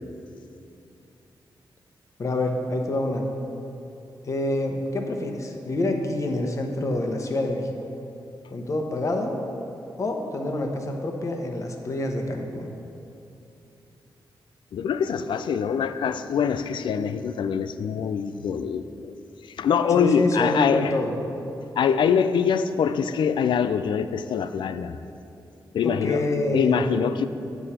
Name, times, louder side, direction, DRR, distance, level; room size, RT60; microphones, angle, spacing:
voice 1, 2.2-3.2 4.2-7.7 8.5-9.4 10.0-12.7 20.0-21.1 25.8-26.8, left 2 dB, 40° left, 3 dB, 0.9 m, -27 dB
voice 2, 14.7-19.1 19.6-20.9 21.8-25.0 25.7-26.2 26.5-27.3, left 7 dB, 75° left, 11 dB, 0.4 m, -24 dB
9.2 x 6.9 x 4.3 m, 2.7 s
wide cardioid pair, 145°, 8 cm